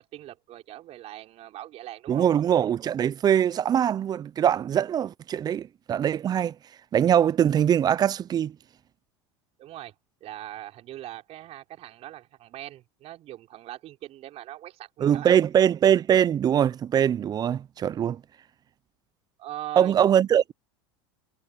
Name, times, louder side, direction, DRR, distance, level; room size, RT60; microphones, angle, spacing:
voice 1, 0.0-2.3 9.6-9.9 10.2-15.5 19.4-20.0, right 14 dB, 45° right, 5.7 m, -41 dB
voice 2, 2.1-6.6 6.9-8.6 15.0-18.2 19.8-20.5, right 9 dB, 30° right, 0.5 m, -22 dB
hypercardioid pair, 100°, 14 cm